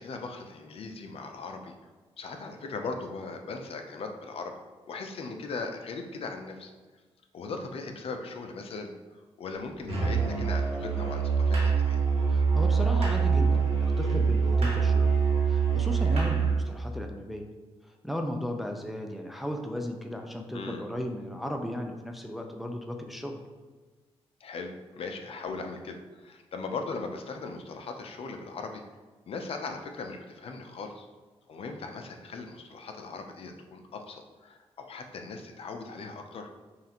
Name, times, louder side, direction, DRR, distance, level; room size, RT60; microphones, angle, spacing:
voice 1, 0.0-1.7 2.2-4.5 4.9-6.7 7.3-8.9 9.4-12.0 20.5-20.8 24.4-28.8 29.3-31.1 31.5-36.5, left 4 dB, 60° left, 4 dB, 0.5 m, -39 dB
Musical instrument, 9.9-16.6, right 5 dB, 70° right, 1.3 m, -24 dB
voice 2, 12.3-15.1 15.4-17.4 18.0-23.4, left 1 dB, ahead, 3 dB, 0.4 m, -35 dB
5.5 x 2.5 x 2.8 m, 1.3 s
cardioid pair, 105°, 11 cm